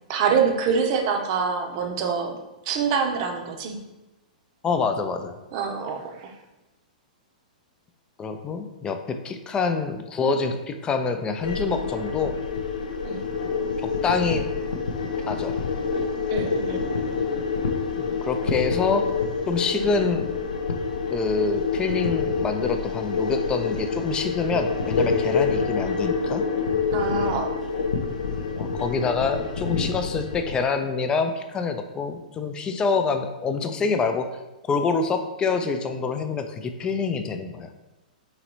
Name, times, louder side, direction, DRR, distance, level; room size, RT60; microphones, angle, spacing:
voice 1, 0.1-2.4 2.6-3.8 5.5-6.4 13.0-13.2 16.3-16.9 26.9-27.5, right 6 dB, 45° right, 4 dB, 0.6 m, -25 dB
voice 2, 4.6-5.3 8.2-12.4 14.0-14.4 15.3-15.6 18.0-19.1 19.5-20.3 21.1-26.4 28.6-34.3 34.7-37.7, left 4 dB, 20° left, 7 dB, 0.4 m, -26 dB
sound 1, 11.4-30.5, left 5 dB, 80° left, 0.5 m, -27 dB
3.8 x 3.0 x 3.0 m, 1.0 s
hypercardioid pair, 115°, 4 cm